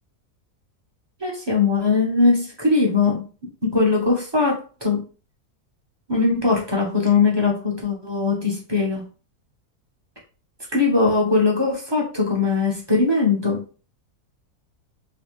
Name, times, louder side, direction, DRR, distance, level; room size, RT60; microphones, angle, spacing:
voice 1, 1.2-3.2 3.6-5.0 6.1-9.0 10.7-13.6, left 4 dB, 20° right, -2 dB, 0.9 m, -20 dB
3.2 x 3.2 x 3.1 m, 0.35 s
omnidirectional pair, 1.7 m